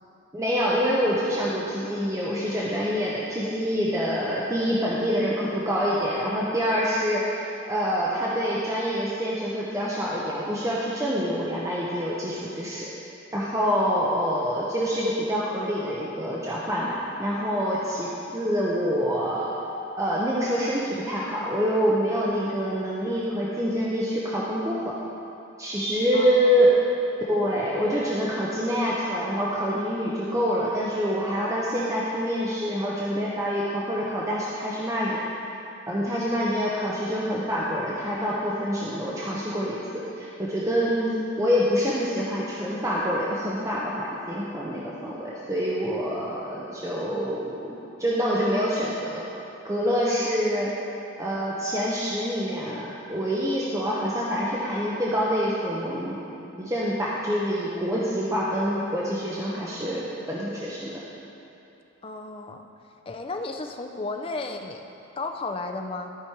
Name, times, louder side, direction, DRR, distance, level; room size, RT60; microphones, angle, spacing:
voice 1, 0.3-12.9 13.3-19.5 20.0-24.9 25.6-26.7 27.3-35.2 35.9-39.8 40.2-47.7 48.0-49.2 49.6-50.7 51.2-56.2 56.6-61.0, equal, 15° right, -6 dB, 0.7 m, -26 dB
voice 2, 26.1-26.7 62.0-62.6 63.1-64.8 65.2-66.1, left 3 dB, 25° left, 4 dB, 0.4 m, -33 dB
13.0 x 5.1 x 4.5 m, 2.9 s
head